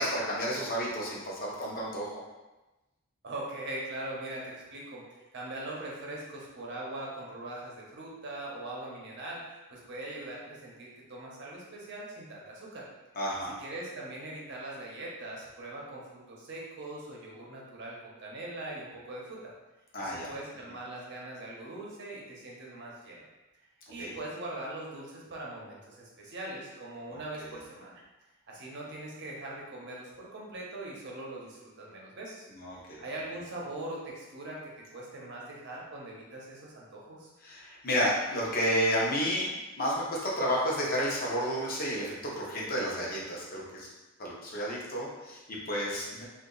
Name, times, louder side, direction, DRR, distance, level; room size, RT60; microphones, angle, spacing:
voice 1, 0.0-2.1 13.2-13.6 19.9-20.3 24.0-24.1 27.1-27.5 32.5-33.0 37.4-39.5 39.8-43.9 44.2-46.2, equal, 45° left, -5 dB, 0.8 m, -31 dB
voice 2, 3.2-5.0 5.3-12.8 13.6-19.4 20.0-23.2 23.9-27.9 28.5-32.4 33.0-37.3, right 2 dB, 55° right, -4 dB, 0.9 m, -41 dB
2.8 x 2.5 x 3.9 m, 1.1 s
head